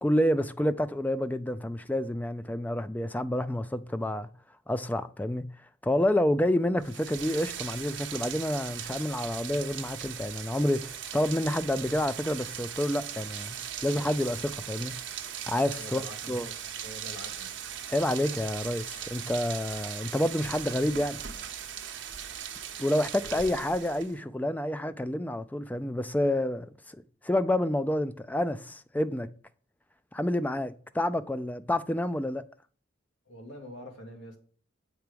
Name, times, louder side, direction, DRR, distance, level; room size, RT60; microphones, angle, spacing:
voice 1, 0.0-4.3 4.7-5.5 5.8-14.9 15.5-16.0 16.3-16.5 17.9-21.2 22.8-27.0 27.2-29.3 30.1-32.4, left 1 dB, 10° left, 0.3 m, -28 dB
Rain, 6.8-24.2, right 9 dB, 60° right, 1.0 m, -39 dB
voice 2, 15.7-16.6 16.8-17.6 23.2-23.5 33.3-34.4, left 1 dB, 65° left, 2.1 m, -45 dB
7.7 x 4.6 x 5.0 m
head